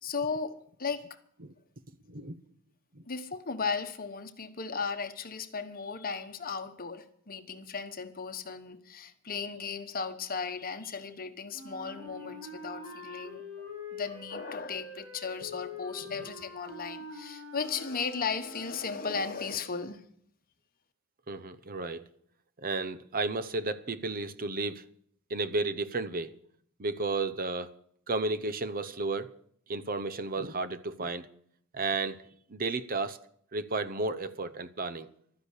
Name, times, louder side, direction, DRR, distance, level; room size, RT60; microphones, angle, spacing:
voice 1, 0.0-1.2 3.1-13.7 13.9-20.0, left 5 dB, 40° left, 1.1 m, -36 dB
Wind instrument woodwind instrument, 11.5-19.2, left 2 dB, 85° right, 7.0 m, -45 dB
voice 2, 21.3-22.0 22.6-24.8 25.3-26.3 26.8-27.7 28.1-29.3 29.7-31.3 31.7-32.2 32.5-33.2 33.5-35.1, right 3 dB, 40° right, 0.8 m, -33 dB
12.5 x 10.0 x 8.2 m
head